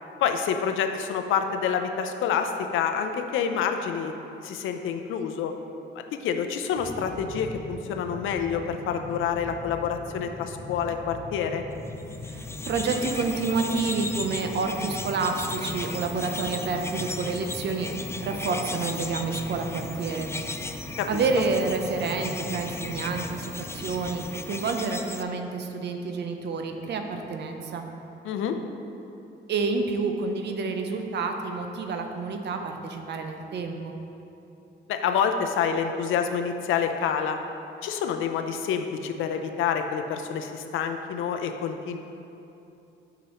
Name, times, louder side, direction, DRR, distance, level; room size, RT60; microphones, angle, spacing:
voice 1, 0.2-4.1 4.4-5.5 6.0-11.6 21.0-21.2 28.2-28.5 34.9-37.4 37.8-42.0, left 7 dB, 85° left, 6 dB, 0.6 m, -27 dB
sound 1, 6.7-24.3, left 2 dB, 40° left, 1.6 m, -40 dB
sound 2, 12.0-25.2, left 3 dB, 15° left, 0.4 m, -37 dB
voice 2, 12.2-17.9 18.2-20.3 21.1-27.9 29.5-34.0, right 4 dB, 60° right, 4 dB, 0.7 m, -29 dB
9.3 x 6.0 x 3.0 m, 2.9 s
cardioid pair, 90°, 20 cm